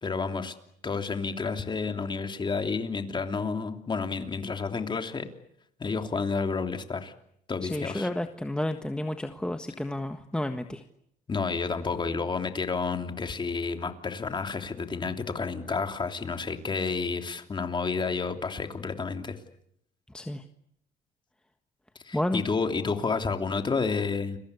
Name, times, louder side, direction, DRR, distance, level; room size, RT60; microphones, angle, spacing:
voice 1, 0.0-0.5 0.8-5.3 5.8-7.1 7.5-8.1 11.3-19.4 22.0-24.4, left 4 dB, 25° left, 6 dB, 3.1 m, -30 dB
voice 2, 7.6-10.8 20.1-20.4 22.1-22.4, left 1 dB, 5° left, 6 dB, 1.5 m, -31 dB
30.0 x 23.0 x 8.4 m, 0.75 s
cardioid pair, 110°, 17 cm